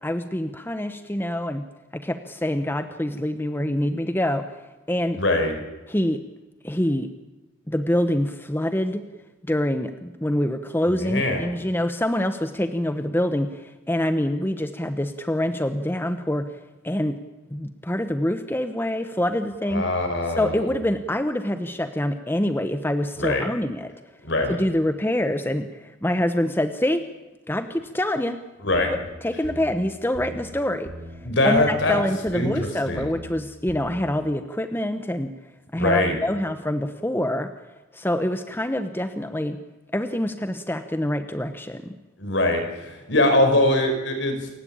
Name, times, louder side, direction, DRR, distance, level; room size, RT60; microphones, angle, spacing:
voice 1, 0.0-1.6 1.9-4.5 4.9-5.2 5.9-6.2 6.6-7.1 7.7-9.0 9.5-16.5 16.8-17.2 17.5-19.8 20.4-23.9 24.5-27.0 27.5-28.4 29.2-30.9 31.4-35.3 35.7-37.5 37.9-39.6 39.9-41.9, left 1 dB, 10° left, 9 dB, 1.0 m, -25 dB
voice 2, 5.1-5.5 10.9-11.5 19.7-20.6 23.2-23.4 24.2-24.6 28.6-28.9 31.2-32.0 32.3-33.0 35.8-36.1 42.2-44.5, left 1 dB, 65° left, 5 dB, 5.1 m, -22 dB
sound 1, 28.7-29.1 29.4-29.8 30.1-30.5 30.8-31.2 31.5-31.9 32.3-32.6 33.0-33.3 33.7-34.0, equal, 55° right, 3.6 m, -39 dB
28.5 x 16.0 x 8.9 m, 1.1 s
head